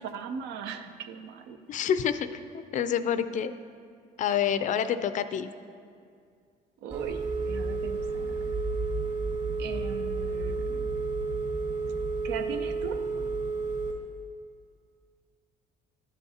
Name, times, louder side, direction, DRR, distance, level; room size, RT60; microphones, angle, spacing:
voice 1, 0.0-1.6 6.8-8.6 9.6-10.9 12.2-13.0, right 7 dB, 85° right, 8 dB, 0.6 m, -39 dB
voice 2, 1.7-3.5 4.2-5.5, left 8 dB, 50° left, 12 dB, 0.4 m, -28 dB
Telephone, 6.9-13.9, right 3 dB, 45° right, 1.8 m, -31 dB
11.5 x 7.1 x 2.8 m, 2.2 s
cardioid pair, 110°, 17 cm